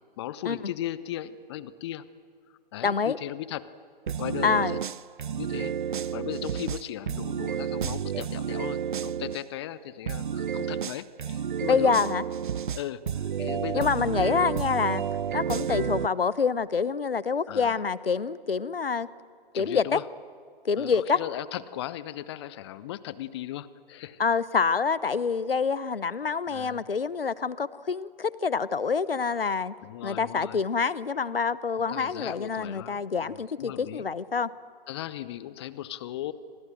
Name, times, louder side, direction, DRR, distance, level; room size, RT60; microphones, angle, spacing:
voice 1, 0.2-2.1 2.7-3.7 4.2-4.8 5.4-12.0 12.7-14.3 17.5-17.8 19.5-20.0 20.8-24.2 26.5-26.9 29.8-30.6 31.9-34.0 34.9-36.3, left 12 dB, 25° left, 16 dB, 0.9 m, -37 dB
voice 2, 2.8-3.2 4.4-4.8 11.7-12.2 13.7-15.0 15.3-19.1 19.5-20.0 20.6-21.2 24.2-29.7 30.0-34.5, left 5 dB, 70° left, 18 dB, 1.0 m, -26 dB
sound 1, 4.1-9.4 10.1-16.1, right 8 dB, 55° right, 0.7 m, -31 dB
27.0 x 27.0 x 7.7 m, 2.1 s
figure-of-eight pair, 130°, 29 cm